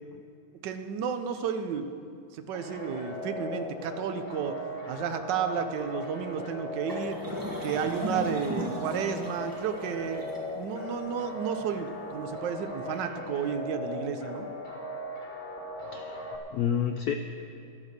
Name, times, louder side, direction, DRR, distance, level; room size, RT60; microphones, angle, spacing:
voice 1, 0.6-1.9 2.3-4.6 4.9-7.2 7.6-10.3 10.5-14.5, right 7 dB, 65° right, 8 dB, 1.3 m, -32 dB
sound 1, 2.5-16.4, left 1 dB, 25° left, 1.3 m, -38 dB
sound 2, 6.9-12.1, equal, 10° right, 1.4 m, -37 dB
voice 2, 15.9-17.1, left 8 dB, 85° left, 7 dB, 0.8 m, -30 dB
12.0 x 11.5 x 6.6 m, 2.6 s
omnidirectional pair, 2.3 m